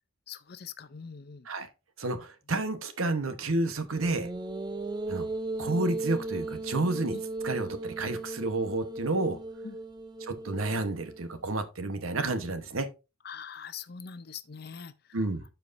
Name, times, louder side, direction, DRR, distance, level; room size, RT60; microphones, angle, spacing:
voice 1, 0.3-1.5 7.1-7.2 9.6-9.8 13.2-15.2, left 6 dB, 50° left, 0.5 m, -43 dB
voice 2, 2.0-4.3 5.1-5.3 5.6-7.2 7.4-9.4 10.2-12.9 15.1-15.4, right 2 dB, 80° right, 1.0 m, -30 dB
sound 1, 4.0-11.4, right 2 dB, 20° right, 0.3 m, -36 dB
12.5 x 4.6 x 2.6 m
head